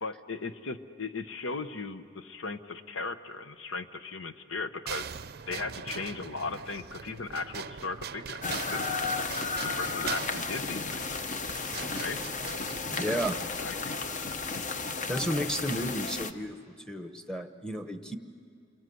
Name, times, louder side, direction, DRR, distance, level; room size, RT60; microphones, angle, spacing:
voice 1, 0.0-5.0 5.5-9.0 9.5-11.2 11.9-12.2 13.6-14.1, left 3 dB, 90° left, 10 dB, 1.0 m, -37 dB
sound 1, 4.9-13.3, right 7 dB, 50° right, 0.5 m, -41 dB
sound 2, 8.4-16.3, left 4 dB, 40° left, 0.8 m, -33 dB
voice 2, 12.9-13.4 15.1-16.6 16.9-18.2, equal, 5° left, 7 dB, 1.0 m, -32 dB
29.0 x 23.0 x 7.9 m, 2.4 s
head